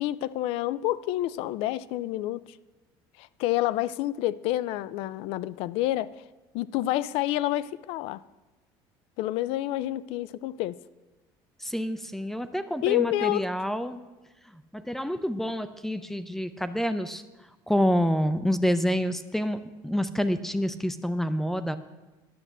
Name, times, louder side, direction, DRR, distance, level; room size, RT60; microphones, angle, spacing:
voice 1, 0.0-2.6 3.2-6.2 6.5-8.2 9.2-10.8 12.8-13.5, left 15 dB, 70° left, 0.4 m, -28 dB
voice 2, 11.6-14.0 14.7-17.2 17.7-21.8, equal, 5° left, 0.5 m, -27 dB
10.5 x 6.6 x 7.3 m
cardioid pair, 130°, 10 cm